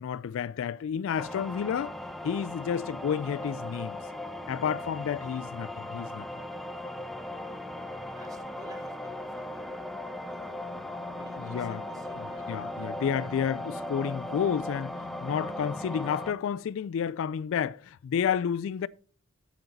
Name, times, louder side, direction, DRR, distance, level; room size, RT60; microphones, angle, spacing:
voice 1, 0.0-2.0 2.2-4.0 4.5-6.3 11.4-11.8 12.2-18.9, left 8 dB, 65° left, 0.3 m, -31 dB
sound 1, 1.2-16.3, left 1 dB, ahead, 0.7 m, -38 dB
voice 2, 7.6-9.9 10.2-12.5 15.0-15.2, right 1 dB, 20° right, 1.1 m, -54 dB
9.0 x 8.1 x 4.0 m
head